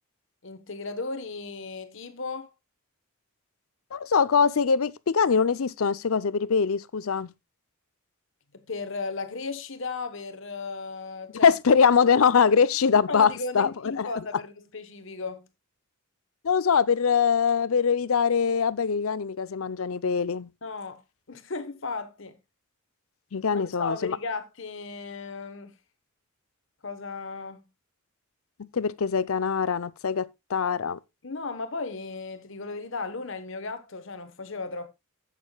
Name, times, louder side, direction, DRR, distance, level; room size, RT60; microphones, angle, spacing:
voice 1, 0.4-2.5 8.7-11.5 13.1-15.5 20.6-21.0 21.3-22.3 23.5-25.7 26.8-27.6 31.2-34.9, left 3 dB, 60° left, 1.1 m, -35 dB
voice 2, 3.9-7.3 11.4-13.7 14.0-14.2 16.4-20.5 23.3-24.2 28.7-31.0, left 6 dB, 75° left, 0.5 m, -23 dB
12.0 x 8.4 x 2.2 m
head